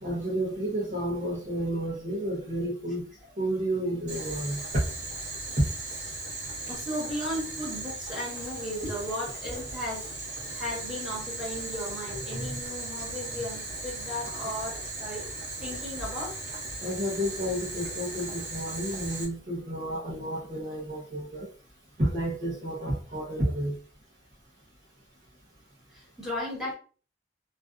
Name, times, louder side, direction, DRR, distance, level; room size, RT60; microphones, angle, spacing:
voice 1, 0.0-3.0 3.4-4.6 5.6-5.7 12.3-12.6 13.3-13.4 14.2-14.5 16.8-21.5 22.0-23.7, right 1 dB, 40° right, -6 dB, 0.7 m, -31 dB
Boiling, 4.1-19.2, right 2 dB, 65° right, 0.9 m, -37 dB
voice 2, 6.6-15.3 15.6-16.4 25.9-26.7, left 1 dB, ahead, -7 dB, 1.4 m, -35 dB
2.4 x 2.4 x 2.3 m, 0.39 s
head